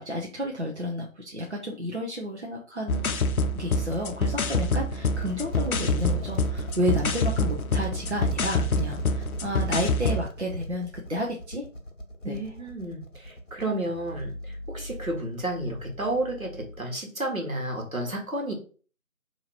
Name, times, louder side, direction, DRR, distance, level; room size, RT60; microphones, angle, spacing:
voice 1, 0.0-3.2 3.5-11.6 12.2-12.5, equal, 55° right, -1 dB, 0.7 m, -31 dB
sound 1, 2.9-10.3, left 2 dB, 85° left, 0.6 m, -26 dB
sound 2, 5.1-16.8, equal, 60° left, 0.9 m, -39 dB
voice 2, 12.2-18.5, right 1 dB, 80° right, 1 dB, 1.5 m, -31 dB
2.9 x 2.8 x 4.3 m, 0.39 s
figure-of-eight pair, 175°, 42 cm